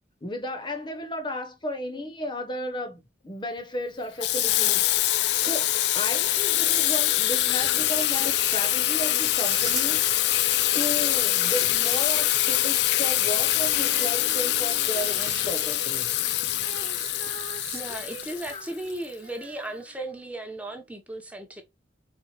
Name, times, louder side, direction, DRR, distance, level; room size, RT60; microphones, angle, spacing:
voice 1, 0.2-4.9 5.2-16.2 18.5-18.6, left 1 dB, 25° left, 0.8 m, -34 dB
Water tap faucet / Sink (filling or washing), 4.2-19.0, left 13 dB, 70° left, 0.4 m, -24 dB
sound 1, 7.8-8.4 9.3-10.2 11.4-12.5 13.4-14.0 14.9-16.0, right 9 dB, 80° right, 1.1 m, -42 dB
Female singing, 13.8-20.4 20.7-20.8, right 6 dB, 55° right, 0.5 m, -44 dB
voice 2, 17.7-21.6, right 1 dB, 10° right, 0.8 m, -36 dB
4.3 x 3.6 x 3.0 m
head